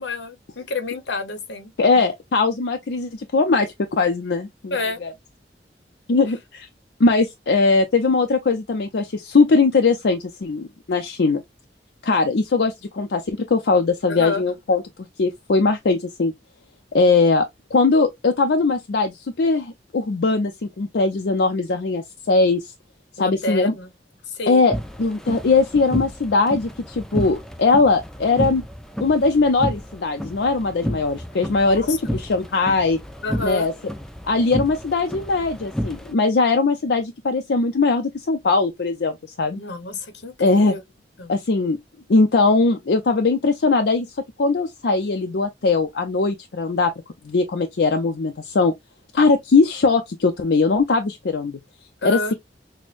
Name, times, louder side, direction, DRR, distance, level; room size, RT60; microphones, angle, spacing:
voice 1, 0.0-1.7 4.7-5.0 14.1-14.4 23.2-23.9 24.3-24.7 31.7-32.0 33.2-33.7 39.5-40.8 41.2-41.3 52.0-52.3, left 3 dB, 85° left, 0.9 m, -29 dB
voice 2, 1.8-4.8 5.0-5.1 6.1-6.7 7.0-11.4 12.0-14.8 15.2-16.3 16.9-22.7 23.2-23.7 24.5-28.6 29.0-33.0 33.4-33.7 34.2-39.6 40.4-40.7 41.3-41.8 42.1-44.1 44.4-46.9 47.2-48.7 49.1-51.6 52.0-52.3, left 3 dB, 70° left, 0.5 m, -20 dB
sound 1, 24.7-36.1, equal, 5° left, 0.4 m, -31 dB
6.1 x 2.1 x 2.4 m
head